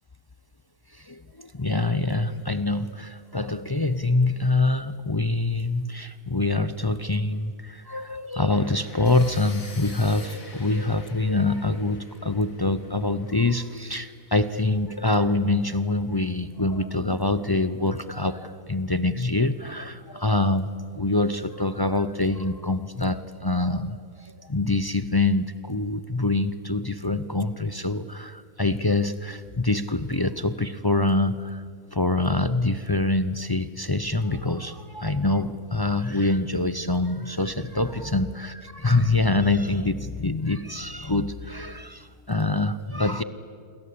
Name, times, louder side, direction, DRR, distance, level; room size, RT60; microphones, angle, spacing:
voice 1, 0.9-20.7 20.9-31.6 31.9-43.2, left 2 dB, 30° left, 12 dB, 0.4 m, -25 dB
sound 1, 8.5-14.4, left 2 dB, 60° left, 3.6 m, -47 dB
28.5 x 22.5 x 8.6 m, 2.2 s
omnidirectional pair, 1.6 m